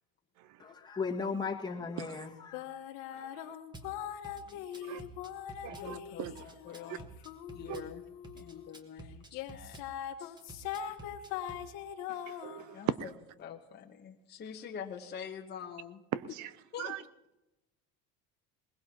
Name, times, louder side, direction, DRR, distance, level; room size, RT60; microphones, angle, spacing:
voice 1, 0.6-2.7, left 5 dB, 15° left, -2 dB, 1.8 m, -36 dB
sound 1, 2.5-8.7 9.3-13.0, left 10 dB, 80° left, 1.4 m, -42 dB
Drum kit / Bass drum, 3.7-3.9 4.2-5.9 6.2-7.9 8.2-9.9 10.4-11.6, right 3 dB, 15° right, 1.4 m, -50 dB
voice 2, 4.5-5.0 5.6-6.3 6.6-7.1 7.5-8.0 8.3-9.8 10.2-10.4 10.9-11.0 12.7-13.1 13.4-16.0 16.7-17.0, left 8 dB, 30° left, 2 dB, 1.1 m, -45 dB
voice 3, 5.6-6.3 7.7-7.8 12.3-13.0 16.1-16.5 16.8-17.0, right 12 dB, 65° right, 16 dB, 0.8 m, -37 dB
21.0 x 20.5 x 2.9 m, 0.96 s
cardioid pair, 120°, 31 cm